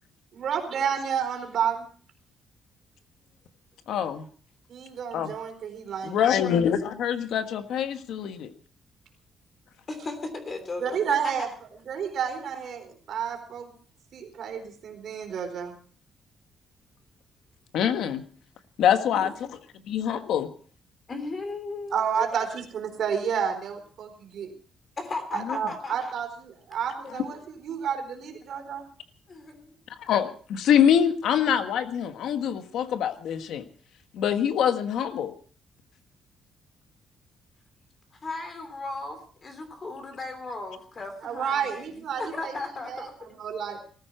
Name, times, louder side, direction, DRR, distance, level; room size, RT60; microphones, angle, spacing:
voice 1, 0.3-1.9 4.7-6.2 10.8-11.5 11.9-13.7 14.1-15.7 19.1-19.3 21.9-24.5 25.3-28.9 41.2-42.6 42.9-43.8, right 7 dB, 55° right, 5 dB, 4.1 m, -30 dB
voice 2, 3.9-4.3 5.1-5.3 6.0-8.5 17.7-18.2 18.8-19.5 19.9-20.5 25.5-25.6 30.0-33.6 34.1-35.3, left 9 dB, 75° left, 9 dB, 1.4 m, -24 dB
voice 3, 9.9-11.3 21.1-22.3 25.0-26.1 27.0-27.2 29.3-29.8 38.2-43.4, left 3 dB, 30° left, 8 dB, 3.1 m, -36 dB
19.5 x 14.0 x 4.5 m, 0.43 s
cardioid pair, 170°, 0 cm